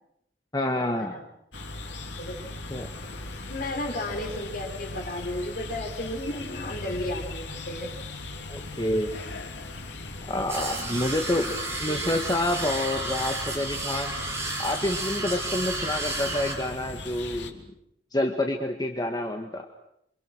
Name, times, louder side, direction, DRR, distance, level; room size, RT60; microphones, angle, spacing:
voice 1, 0.5-1.1 2.7-2.9 8.5-9.1 10.3-11.5 11.8-14.2 14.6-17.6 18.1-19.7, left 1 dB, 20° left, 3 dB, 2.0 m, -28 dB
sound 1, 1.5-17.5, left 2 dB, 90° left, 3.3 m, -39 dB
voice 2, 2.2-3.1 3.5-7.9 11.8-12.2 16.1-16.6, left 1 dB, 50° left, 3 dB, 5.2 m, -34 dB
sound 2, 10.5-16.5, right 2 dB, 15° right, 6.8 m, -32 dB
29.0 x 25.5 x 6.4 m, 0.77 s
head